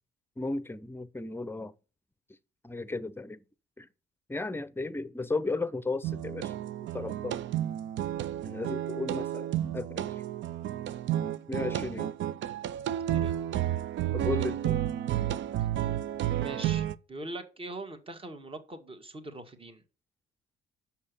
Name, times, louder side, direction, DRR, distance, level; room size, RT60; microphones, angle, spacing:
voice 1, 0.4-1.7 2.6-3.4 3.8-3.9 4.3-6.5 6.9-7.4 8.4-10.1 11.5-12.1 14.1-14.8, left 3 dB, 10° left, 0.7 m, -34 dB
sound 1, 6.0-16.9, right 12 dB, 70° right, 0.5 m, -31 dB
voice 2, 16.3-19.8, right 2 dB, 25° right, 1.6 m, -42 dB
7.0 x 5.5 x 6.7 m
cardioid pair, 90°, 20 cm